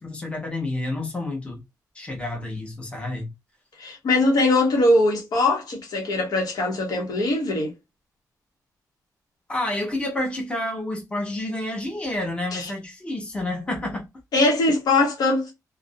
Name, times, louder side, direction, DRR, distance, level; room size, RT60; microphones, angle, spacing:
voice 1, 0.0-1.6 1.9-3.3 9.5-14.1, left 1 dB, 15° left, 0.7 m, -29 dB
voice 2, 3.8-7.7 12.5-12.7 14.3-15.5, left 2 dB, 70° left, 0.9 m, -21 dB
2.4 x 2.0 x 2.6 m
wide cardioid pair, 165°, 7 cm